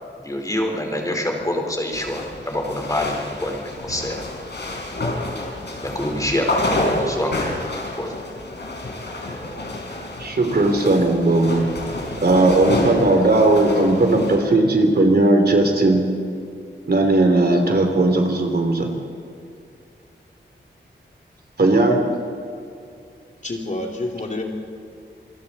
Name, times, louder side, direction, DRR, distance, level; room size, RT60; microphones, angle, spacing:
voice 1, 0.2-4.2 5.7-6.5 6.8-7.5 7.9-8.1, left 1 dB, 20° left, 1 dB, 4.3 m, -26 dB
sound 1, 1.9-14.4, left 1 dB, 65° left, 5.0 m, -29 dB
voice 2, 10.2-11.6 12.2-16.0 16.9-18.9 21.6-22.0, right 2 dB, 60° right, 3 dB, 3.4 m, -17 dB
voice 3, 23.4-24.4, left 2 dB, 40° left, 0 dB, 3.1 m, -28 dB
27.0 x 22.0 x 4.3 m, 2.5 s
wide cardioid pair, 115°, 19 cm